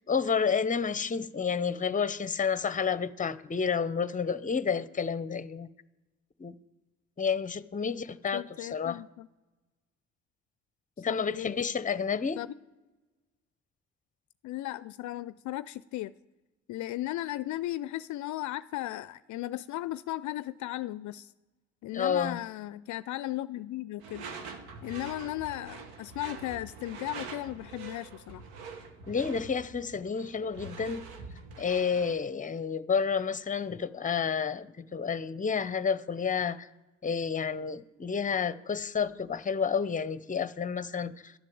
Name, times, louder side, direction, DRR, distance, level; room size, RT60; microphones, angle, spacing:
voice 1, 0.1-5.7 6.4-6.6 7.2-9.0 11.0-12.4 21.9-22.4 29.1-31.0 31.6-36.7 37.0-41.3, left 6 dB, 25° left, 0.8 m, -30 dB
voice 2, 8.3-9.3 11.1-11.5 12.4-12.5 14.4-16.1 16.7-21.3 21.8-24.3 24.8-28.4, left 15 dB, 60° left, 0.4 m, -36 dB
Door / Screech, 24.0-32.2, right 4 dB, 80° right, 1.3 m, -45 dB
12.0 x 7.5 x 7.8 m
hypercardioid pair, 50°, 33 cm